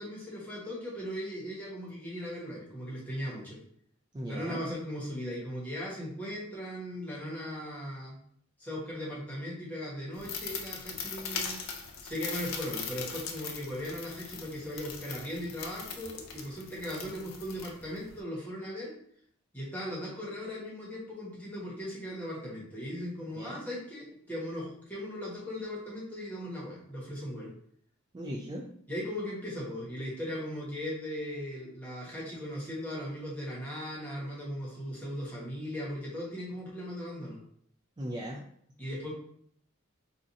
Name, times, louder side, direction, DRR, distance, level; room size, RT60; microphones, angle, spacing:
voice 1, 0.0-3.6 4.3-8.2 8.6-11.6 12.0-19.0 19.5-27.5 28.9-37.4 38.8-39.1, equal, 10° left, -6 dB, 1.1 m, -38 dB
voice 2, 4.1-4.6 23.4-23.6 28.1-28.7 38.0-38.4, equal, 20° right, -2 dB, 0.3 m, -38 dB
sound 1, 10.1-18.2, left 6 dB, 80° left, 0.5 m, -40 dB
4.2 x 2.5 x 2.6 m, 0.65 s
head